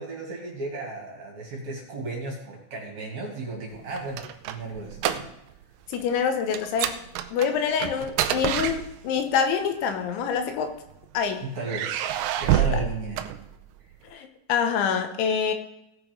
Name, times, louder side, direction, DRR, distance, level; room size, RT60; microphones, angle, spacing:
voice 1, 0.0-5.3 11.4-12.1 12.4-13.2, right 3 dB, 45° right, -1 dB, 3.2 m, -34 dB
sound 1, 3.7-5.6 5.9-6.1 6.5-9.3 10.2-11.1 11.6-13.9, right 11 dB, 85° right, 2.2 m, -28 dB
voice 2, 5.9-7.0 7.3-10.7 11.1-11.4 12.5-12.8 14.1-15.5, left 7 dB, 85° left, 6 dB, 3.4 m, -26 dB
17.5 x 6.0 x 5.3 m, 0.86 s
omnidirectional pair, 5.4 m